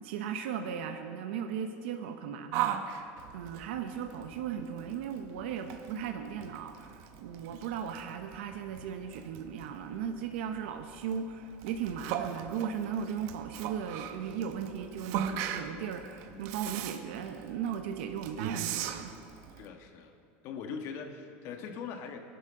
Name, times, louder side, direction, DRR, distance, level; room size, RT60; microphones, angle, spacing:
voice 1, 0.0-19.2, right 8 dB, 90° right, 6 dB, 0.8 m, -37 dB
Yell, 2.5-19.7, right 10 dB, 65° right, 0.8 m, -39 dB
voice 2, 16.2-16.6 19.6-20.1 20.4-22.2, left 6 dB, 55° left, 4 dB, 1.4 m, -41 dB
21.0 x 11.5 x 3.7 m, 2.5 s
supercardioid pair, 140°, 6 cm